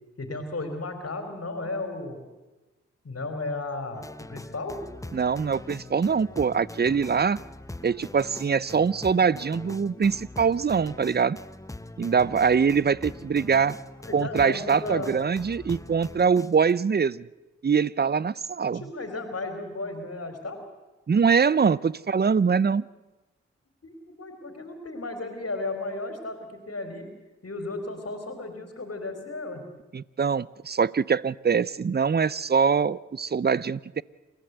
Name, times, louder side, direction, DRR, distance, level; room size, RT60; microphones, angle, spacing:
voice 1, 0.2-2.2 3.0-4.8 14.0-15.2 18.6-20.6 23.8-27.1 27.4-29.6, left 2 dB, 50° left, 4 dB, 3.8 m, -34 dB
sound 1, 3.9-16.7, left 2 dB, 10° left, 0.9 m, -42 dB
voice 2, 5.1-7.4 7.8-11.4 12.0-13.8 14.1-17.3 17.6-18.8 21.1-22.8 29.9-34.0, right 6 dB, 35° right, 21 dB, 0.7 m, -23 dB
27.5 x 14.5 x 8.2 m, 1.1 s
supercardioid pair, 40°, 30 cm